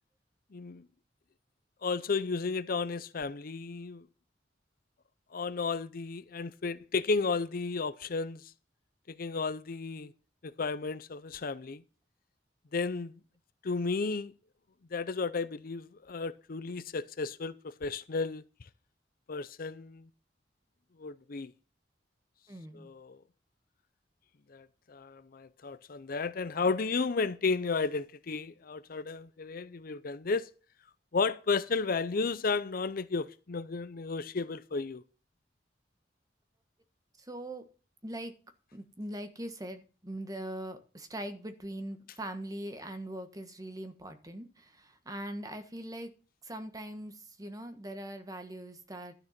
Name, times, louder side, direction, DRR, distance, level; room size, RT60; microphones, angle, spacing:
voice 1, 0.5-0.9 1.8-4.1 5.3-8.5 9.1-10.1 10.4-11.8 12.7-13.2 13.6-14.3 14.9-18.4 19.3-20.1 21.0-21.5 22.7-23.2 24.5-30.5 31.1-35.0, left 4 dB, 55° left, 0.6 m, -33 dB
voice 2, 22.5-22.9 37.2-37.6 38.0-38.4 38.7-46.1 46.4-49.1, right 1 dB, 20° right, 1.4 m, -41 dB
12.5 x 6.7 x 5.9 m
head